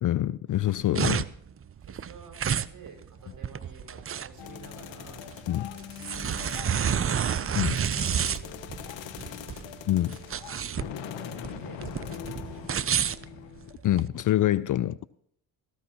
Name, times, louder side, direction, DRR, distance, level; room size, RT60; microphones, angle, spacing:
voice 1, 0.0-1.2 5.5-5.7 7.6-7.8 9.9-10.2 13.8-15.0, left 13 dB, 45° left, 0.5 m, -25 dB
sound 1, 0.5-14.1, right 8 dB, 30° right, 0.6 m, -30 dB
voice 2, 1.7-5.2 5.9-9.6 10.7-13.0, right 4 dB, 45° right, 6.3 m, -51 dB
Soldiers Flashback, 4.4-13.7, left 9 dB, 70° left, 1.4 m, -42 dB
18.0 x 14.5 x 3.0 m
supercardioid pair, 65°, 46 cm